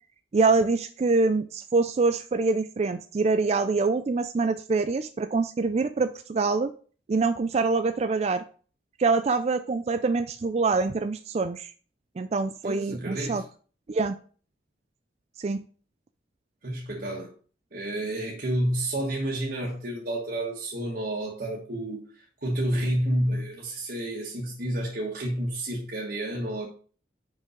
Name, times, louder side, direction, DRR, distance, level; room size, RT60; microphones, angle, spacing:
voice 1, 0.3-6.7 7.1-8.4 9.0-11.7 12.2-13.4 13.9-14.2 15.4-15.6, right 3 dB, 35° right, 0.3 m, -25 dB
voice 2, 12.6-13.4 16.6-17.3 17.7-22.1 22.4-26.7, right 1 dB, 50° right, 1.4 m, -30 dB
5.5 x 5.3 x 5.0 m
head